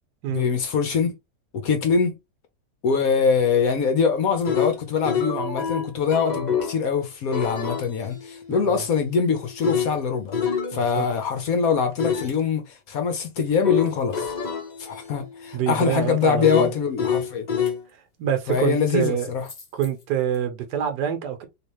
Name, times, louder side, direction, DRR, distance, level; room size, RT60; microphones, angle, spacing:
voice 1, 0.3-1.2 1.5-2.2 2.8-10.4 10.7-14.3 14.8-17.5 18.5-19.5, left 6 dB, 65° left, 1.0 m, -23 dB
sound 1, 4.2-6.8 7.3-11.4 12.0-12.3 13.6-17.8 19.5-19.9, left 7 dB, 40° left, 0.6 m, -28 dB
voice 2, 8.5-8.8 10.7-11.1 15.5-16.7 18.2-19.3 19.7-21.5, right 9 dB, 75° right, 1.3 m, -26 dB
3.3 x 2.9 x 3.0 m
omnidirectional pair, 1.9 m